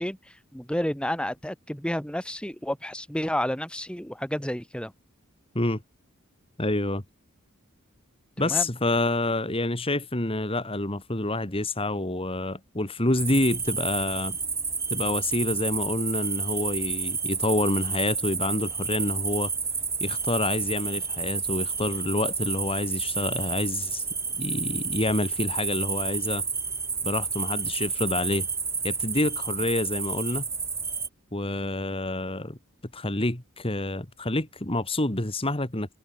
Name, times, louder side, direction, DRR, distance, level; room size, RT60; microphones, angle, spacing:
voice 1, 0.0-4.9 8.4-8.7, equal, 5° left, 3.2 m, -31 dB
voice 2, 6.6-7.0 8.4-14.4 14.9-19.5 20.0-24.1 24.4-26.4 27.0-28.5 28.8-30.5 31.3-32.6 32.9-36.0, left 2 dB, 25° left, 2.8 m, -28 dB
sound 1, 13.2-31.1, right 5 dB, 15° right, 1.4 m, -30 dB
head